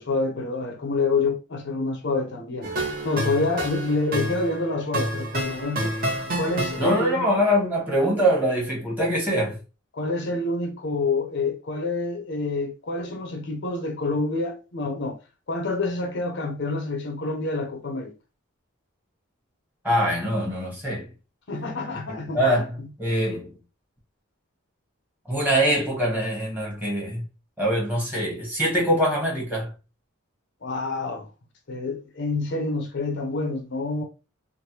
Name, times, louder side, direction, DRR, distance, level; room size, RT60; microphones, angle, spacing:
voice 1, 0.0-2.7 3.0-6.0 6.4-7.3 9.9-15.2 15.5-18.1 21.5-22.9 30.6-31.3 31.7-34.0, left 3 dB, 55° left, 0.6 m, -27 dB
sound 1, 2.6-7.3, right 1 dB, 40° right, 0.9 m, -29 dB
voice 2, 6.8-9.6 19.8-21.1 22.3-22.7 23.0-23.5 25.3-27.2 27.6-29.7, equal, 10° right, 1.1 m, -23 dB
3.2 x 2.1 x 2.8 m
head